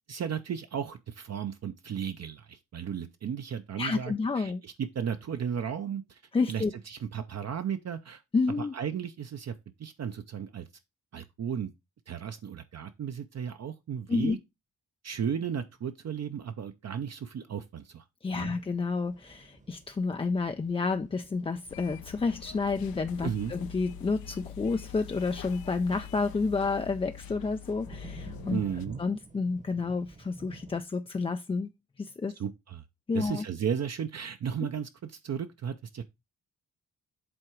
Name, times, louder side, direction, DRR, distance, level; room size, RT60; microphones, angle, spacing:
voice 1, 0.1-6.2 6.5-8.2 8.6-10.7 11.1-11.7 12.1-14.4 15.0-18.0 18.3-18.6 23.2-23.5 28.5-29.0 32.4-32.8 33.1-36.0, right 8 dB, 50° right, 0.6 m, -35 dB
voice 2, 3.8-4.6 6.3-6.7 8.3-8.7 14.1-14.4 18.2-28.6 29.0-31.7 32.0-32.4 33.1-33.4, left 4 dB, 15° left, 0.3 m, -30 dB
sound 1, 18.4-30.8, right 2 dB, 20° right, 0.9 m, -52 dB
sound 2, 21.7-28.9, left 9 dB, 80° left, 0.7 m, -44 dB
7.8 x 3.7 x 4.5 m
cardioid pair, 100°, 35 cm